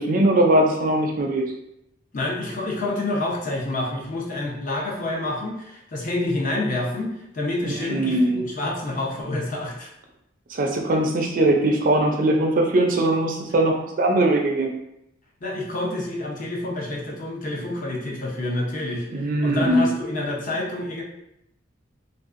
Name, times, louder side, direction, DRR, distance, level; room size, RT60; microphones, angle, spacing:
voice 1, 0.0-1.4 7.6-8.4 10.5-14.7 19.1-19.9, right 1 dB, 45° right, 3 dB, 0.4 m, -20 dB
voice 2, 2.1-7.1 7.3-9.9 15.4-21.0, left 2 dB, 40° left, -2 dB, 0.7 m, -28 dB
3.3 x 2.5 x 2.4 m, 0.81 s
head